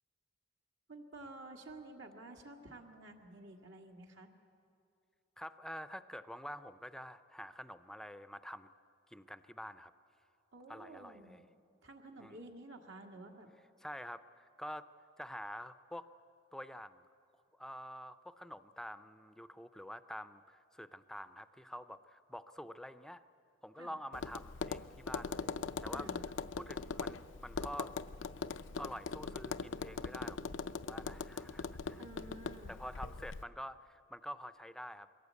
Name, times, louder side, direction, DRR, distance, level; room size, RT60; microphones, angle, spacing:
voice 1, 0.9-4.3 10.5-11.4 11.8-13.5 23.8-23.9 25.9-26.2 32.0-32.7, right 2 dB, 75° right, 2 dB, 1.9 m, -51 dB
voice 2, 5.4-8.7 9.1-9.9 10.7-11.4 12.2-12.4 13.8-14.9 15.2-16.1 16.5-17.1 17.5-23.2 23.6-25.5 25.8-26.1 26.6-27.9 28.8-30.4 30.7-32.0 32.7-35.1, equal, 5° left, 13 dB, 0.5 m, -47 dB
Tap, 24.1-33.4, left 4 dB, 80° left, 0.5 m, -41 dB
22.0 x 17.5 x 8.2 m, 2.7 s
head